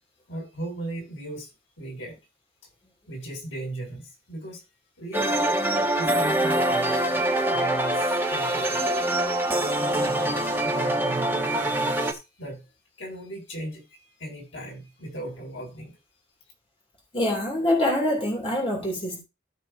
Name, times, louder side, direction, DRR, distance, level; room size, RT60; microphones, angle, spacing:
voice 1, 0.3-1.5 1.8-2.1 3.1-4.6 5.0-7.2 7.5-8.8 9.8-12.6 13.0-13.8 14.2-15.9, right 1 dB, 85° left, 6.7 m, -37 dB
sound 1, 5.1-12.1, right 1 dB, 10° right, 1.2 m, -24 dB
voice 2, 17.1-19.2, left 1 dB, 30° left, 2.9 m, -25 dB
14.0 x 6.8 x 2.8 m
head